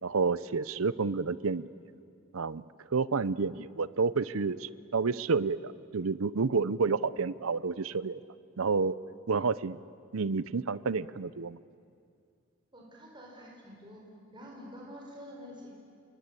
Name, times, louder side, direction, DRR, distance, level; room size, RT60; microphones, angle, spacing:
voice 1, 0.0-1.7 2.3-2.6 2.9-8.2 8.6-9.0 9.3-9.8 10.1-11.6, right 4 dB, 80° right, 17 dB, 0.7 m, -29 dB
voice 2, 12.7-14.0 14.3-15.7, equal, 25° right, -1 dB, 4.8 m, -47 dB
28.5 x 23.5 x 8.5 m, 2.3 s
head